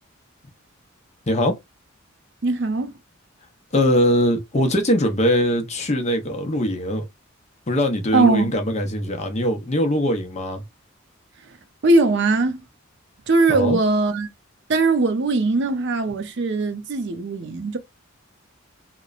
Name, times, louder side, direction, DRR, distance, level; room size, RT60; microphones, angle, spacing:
voice 1, 1.3-1.6 3.7-7.0 7.7-10.6 13.5-13.8, equal, 35° left, 0.6 m, -21 dB
voice 2, 2.4-2.9 8.1-8.5 11.8-12.6 13.3-14.3 14.7-17.8, right 3 dB, 60° right, 0.5 m, -20 dB
2.9 x 2.1 x 2.3 m
head